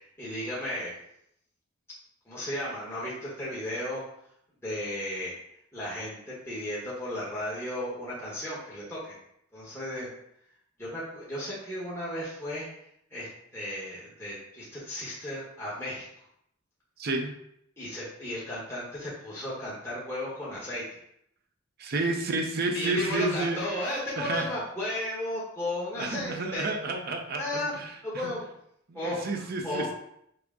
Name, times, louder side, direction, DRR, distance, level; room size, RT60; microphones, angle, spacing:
voice 1, 0.2-0.9 2.3-4.0 4.6-5.3 5.7-9.2 9.5-10.1 10.8-12.7 13.1-13.3 13.5-16.0 17.8-21.0 22.7-26.7 27.4-27.7 28.0-28.6 28.9-29.2 29.6-29.9, left 1 dB, 15° left, -8 dB, 1.0 m, -34 dB
voice 2, 17.0-17.3 21.8-23.6 24.2-24.5 25.9-28.3 28.9-29.9, right 2 dB, 50° right, 4 dB, 0.6 m, -31 dB
6.0 x 2.1 x 3.6 m, 0.74 s
head